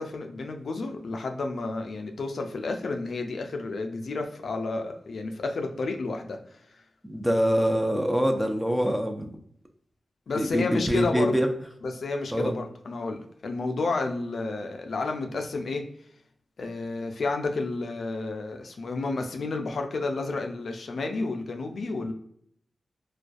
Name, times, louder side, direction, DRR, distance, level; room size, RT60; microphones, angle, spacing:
voice 1, 0.0-6.6 10.3-11.4 11.8-15.8 16.6-22.1, left 3 dB, 75° left, 4 dB, 0.3 m, -31 dB
voice 2, 7.0-9.3 10.4-11.5 12.3-12.5, equal, 10° right, 4 dB, 0.4 m, -24 dB
2.4 x 2.2 x 2.3 m, 0.66 s
cardioid pair, 40°, 0 cm